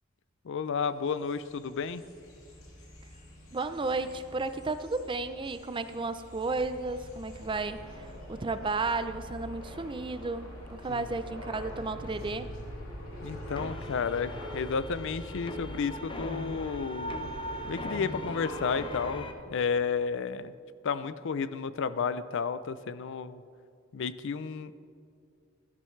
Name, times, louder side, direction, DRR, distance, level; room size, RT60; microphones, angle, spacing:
voice 1, 0.4-2.0 10.9-11.0 13.2-17.2 17.7-20.5 20.8-23.4 23.9-24.8, left 5 dB, 65° left, 14 dB, 0.5 m, -32 dB
sound 1, 1.0-19.3, equal, 85° left, 2.7 m, -44 dB
voice 2, 3.5-12.5, right 3 dB, 25° right, 11 dB, 0.5 m, -33 dB
sound 2, 13.6-19.3, left 1 dB, 25° left, 0.7 m, -40 dB
16.5 x 12.5 x 3.2 m, 2.4 s
head